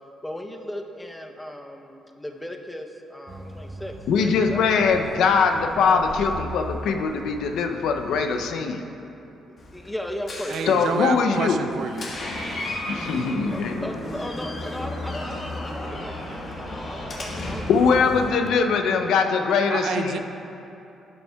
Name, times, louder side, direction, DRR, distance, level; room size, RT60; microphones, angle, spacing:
voice 1, 0.2-4.7 5.8-6.1 9.5-11.0 13.5-17.9 18.4-19.3, left 1 dB, 5° left, 3 dB, 0.6 m, -36 dB
sound 1, 3.3-8.5, right 1 dB, 25° right, 0.7 m, -39 dB
voice 2, 4.1-8.8 10.7-11.6 12.9-13.8 17.7-20.2, left 5 dB, 80° left, 5 dB, 0.4 m, -22 dB
Door, 9.6-18.3, left 1 dB, 45° left, 1.2 m, -34 dB
voice 3, 10.5-12.1 19.7-20.2, right 6 dB, 75° right, 7 dB, 0.4 m, -28 dB
11.5 x 5.5 x 2.2 m, 2.9 s
cardioid pair, 90°, 0 cm